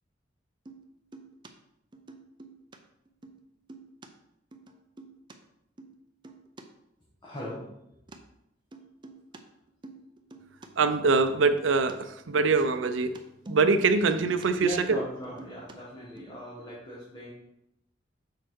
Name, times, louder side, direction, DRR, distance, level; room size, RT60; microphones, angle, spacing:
sound 1, 0.7-1.5 1.9-2.8 3.1-3.4 3.7-4.1 4.5-5.3 5.8-6.0 6.2-6.6 8.1-8.2 8.7-9.4 9.7-10.7 11.1-12.0 12.2-14.5 14.8-15.8 16.2-16.3, right 2 dB, 25° right, 0.6 m, -47 dB
voice 1, 7.2-7.7 14.6-17.3, equal, 25° left, -7 dB, 1.5 m, -38 dB
voice 2, 10.8-13.1 13.5-15.0, right 4 dB, 70° right, 9 dB, 0.6 m, -24 dB
6.5 x 4.5 x 4.6 m, 0.84 s
head